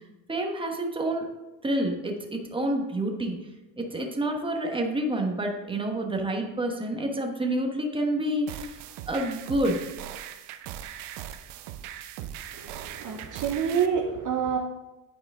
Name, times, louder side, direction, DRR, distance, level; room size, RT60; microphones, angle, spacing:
voice 1, 0.3-1.3 1.6-3.4 3.9-8.8 9.1-9.8, right 1 dB, 10° right, 2 dB, 1.2 m, -28 dB
sound 1, 8.5-13.9, right 11 dB, 80° right, 0.7 m, -40 dB
voice 2, 12.5-14.6, right 7 dB, 40° right, 2 dB, 0.8 m, -28 dB
9.2 x 4.8 x 3.6 m, 1.0 s
cardioid pair, 100°, 48 cm